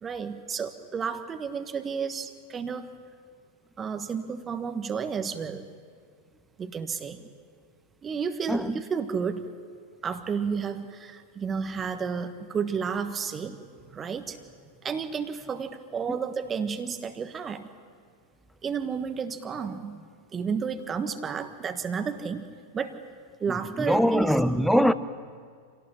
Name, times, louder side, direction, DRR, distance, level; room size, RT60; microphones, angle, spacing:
voice 1, 0.0-2.9 3.8-5.6 6.6-7.2 8.0-9.5 10.0-13.6 13.9-14.4 14.8-17.7 18.6-22.5 22.7-23.0 23.4-24.3, right 6 dB, 20° right, 1.4 m, -31 dB
voice 2, 23.8-24.9, equal, ahead, 0.9 m, -22 dB
27.5 x 18.0 x 10.0 m
figure-of-eight pair, 90°, 0 cm